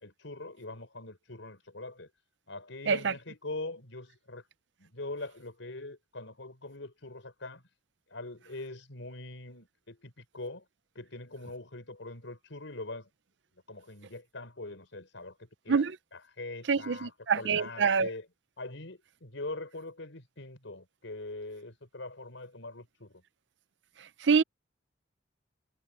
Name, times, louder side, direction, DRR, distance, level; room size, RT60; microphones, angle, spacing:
voice 1, 0.0-2.1 2.5-4.4 4.8-7.6 8.1-10.6 10.9-13.1 13.7-18.3 18.6-23.2, left 2 dB, 85° left, 4.8 m, -43 dB
voice 2, 16.7-18.1 24.2-24.4, right 5 dB, 65° right, 0.6 m, -26 dB
head